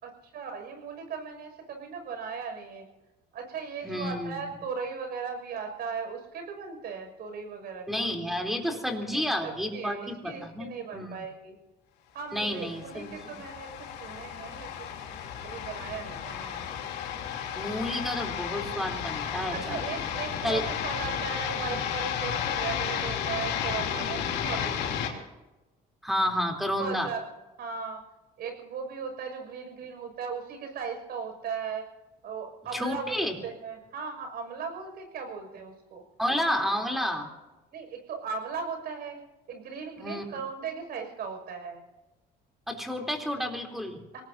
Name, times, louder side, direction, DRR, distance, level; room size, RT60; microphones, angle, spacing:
voice 1, 0.0-2.9 3.3-8.0 9.1-11.6 12.1-14.9 15.4-16.7 19.5-25.2 26.8-27.3 27.6-28.0 28.4-31.8 32.2-36.0 37.7-39.2 39.5-41.8 44.1-44.2, right 5 dB, 65° right, 5 dB, 6.2 m, -37 dB
voice 2, 3.8-4.4 7.9-11.2 12.3-13.3 17.6-19.8 20.4-20.6 26.0-27.1 32.7-33.3 36.2-37.3 40.0-40.2 42.7-44.0, equal, ahead, 3 dB, 3.4 m, -30 dB
sound 1, 12.5-25.1, left 9 dB, 80° left, 3.1 m, -33 dB
25.5 x 19.0 x 2.7 m, 1.1 s
cardioid pair, 110°, 17 cm